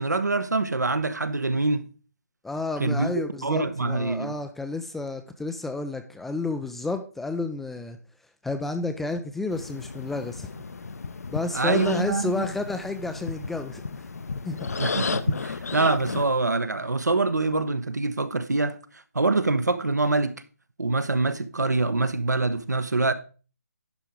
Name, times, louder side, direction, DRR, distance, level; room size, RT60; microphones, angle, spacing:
voice 1, 0.0-1.9 2.8-3.1 3.4-4.4 11.5-12.5 14.8-18.8 19.1-20.3 20.8-23.1, right 3 dB, 80° right, 1.0 m, -25 dB
voice 2, 2.4-8.0 8.4-10.5 11.3-13.8 14.4-14.7, left 3 dB, ahead, 0.3 m, -31 dB
sound 1, 9.5-16.2, left 4 dB, 65° left, 0.7 m, -33 dB
11.0 x 4.7 x 5.1 m
figure-of-eight pair, 150°, 9 cm